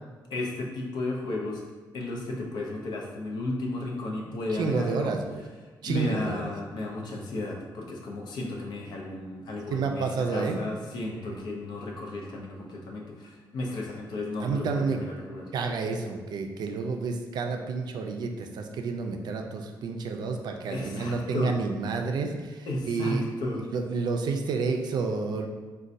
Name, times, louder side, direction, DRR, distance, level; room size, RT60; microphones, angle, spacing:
voice 1, 0.3-1.6 1.9-5.1 5.8-15.5 20.7-21.5 22.7-23.7, left 2 dB, 70° left, 0 dB, 0.6 m, -34 dB
voice 2, 4.5-5.4 5.8-6.5 9.7-10.7 14.4-15.0 15.5-23.2 23.7-25.5, right 4 dB, 65° right, 3 dB, 0.4 m, -30 dB
4.0 x 2.2 x 2.5 m, 1.3 s
cardioid pair, 105°, 8 cm